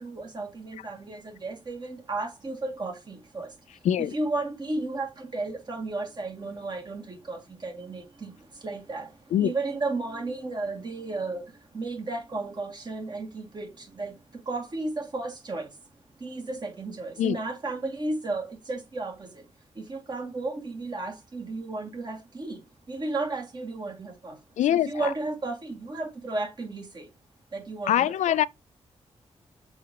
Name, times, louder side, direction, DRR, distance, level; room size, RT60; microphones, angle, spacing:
voice 1, 0.0-3.5 4.0-8.3 8.6-9.1 9.4-11.4 11.7-13.7 14.0-14.1 14.5-15.7 16.2-19.3 19.8-22.6 22.9-24.4 24.7-27.1 27.5-28.4, right 2 dB, 40° right, 2.1 m, -33 dB
voice 2, 24.6-25.1 27.9-28.5, left 11 dB, 90° left, 0.4 m, -23 dB
7.0 x 5.0 x 2.8 m
wide cardioid pair, 110°, 12 cm